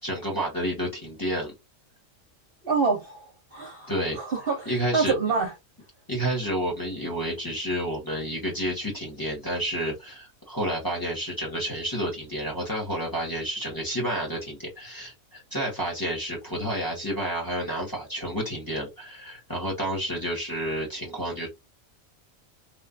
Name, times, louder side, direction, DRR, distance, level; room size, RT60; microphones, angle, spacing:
voice 1, 0.0-1.5 3.9-4.2 4.6-5.1 6.1-21.5, equal, 15° left, 1.5 m, -30 dB
voice 2, 2.6-5.5, right 4 dB, 50° right, 0.9 m, -27 dB
3.3 x 3.1 x 2.5 m
omnidirectional pair, 1.4 m